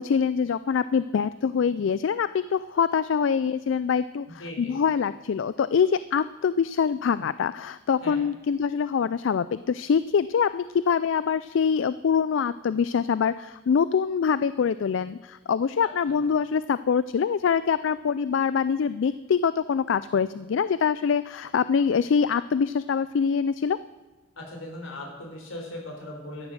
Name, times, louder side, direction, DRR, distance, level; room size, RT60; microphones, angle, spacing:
voice 1, 0.0-23.8, left 6 dB, 65° left, 15 dB, 0.3 m, -24 dB
voice 2, 4.4-4.8 8.0-8.2 15.8-16.2 24.4-26.5, left 1 dB, 80° left, 1 dB, 3.9 m, -39 dB
13.0 x 10.5 x 6.3 m, 1.3 s
head